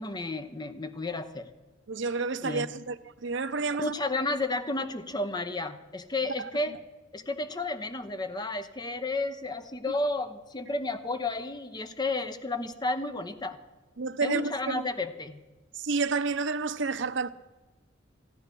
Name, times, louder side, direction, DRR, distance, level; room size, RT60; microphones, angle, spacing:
voice 1, 0.0-1.5 2.4-2.7 3.8-6.7 7.1-13.6 14.2-15.4, left 2 dB, 20° left, 0.9 m, -32 dB
voice 2, 1.9-3.0 3.2-3.9 6.2-6.5 14.0-14.9 15.7-17.3, right 4 dB, 65° right, 0.7 m, -30 dB
15.5 x 9.7 x 6.9 m
head